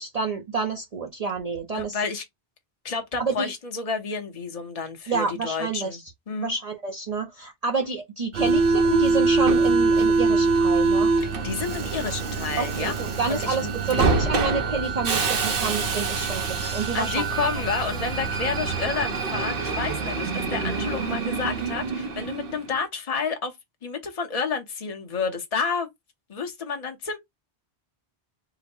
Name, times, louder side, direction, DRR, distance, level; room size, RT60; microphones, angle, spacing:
voice 1, 0.0-2.1 3.2-3.5 5.1-6.0 6.4-11.1 12.6-17.3, right 4 dB, 45° right, 0.7 m, -28 dB
voice 2, 1.7-2.2 2.8-6.0 6.3-6.5 11.4-12.9 13.3-13.7 16.9-23.5 23.8-25.9 26.3-27.2, left 5 dB, 40° left, 0.9 m, -30 dB
Subway metro underground, 8.3-22.7, right 4 dB, 65° right, 1.0 m, -24 dB
3.9 x 2.1 x 4.3 m
omnidirectional pair, 1.0 m